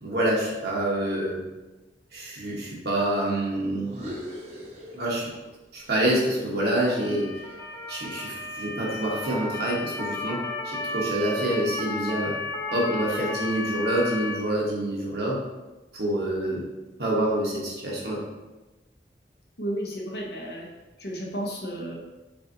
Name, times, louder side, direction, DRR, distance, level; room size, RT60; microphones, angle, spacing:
voice 1, 0.0-1.4 2.1-3.9 4.9-5.3 5.7-7.3 7.9-12.4 12.7-15.4 15.9-16.6 17.0-18.2, right 1 dB, 60° right, -4 dB, 1.3 m, -27 dB
sound 1, 3.8-5.6 5.8-8.1, equal, 40° right, 0.8 m, -42 dB
Motor vehicle (road) / Siren, 6.9-14.4, left 2 dB, 15° left, 0.4 m, -33 dB
voice 2, 19.6-20.7 21.0-22.0, right 1 dB, 65° left, -1 dB, 0.9 m, -32 dB
6.3 x 2.6 x 2.8 m, 1.1 s
head